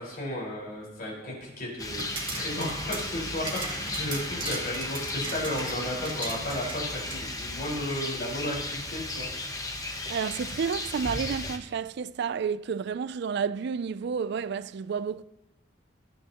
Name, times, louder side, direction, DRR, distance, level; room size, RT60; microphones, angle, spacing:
voice 1, 0.0-9.3, left 1 dB, 50° left, 4.6 m, -34 dB
Rain, 1.8-11.6, left 2 dB, 20° left, 1.0 m, -35 dB
sound 1, 1.9-7.2, right 3 dB, 25° right, 2.1 m, -39 dB
voice 2, 10.1-15.2, right 6 dB, 60° right, 0.4 m, -30 dB
20.0 x 9.2 x 2.9 m
head